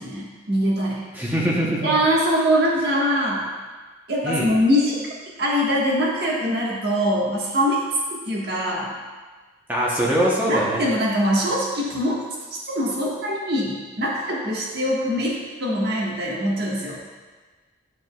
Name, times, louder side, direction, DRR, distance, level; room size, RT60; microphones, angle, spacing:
voice 1, 0.0-1.1 1.8-3.5 4.1-5.0 5.4-7.8 8.2-8.9 10.5-12.2 12.7-17.0, equal, 50° right, -4 dB, 1.5 m, -23 dB
voice 2, 1.1-1.9 4.2-4.5 9.7-10.8, equal, 10° right, -5 dB, 0.9 m, -22 dB
11.0 x 5.2 x 2.3 m, 1.3 s
head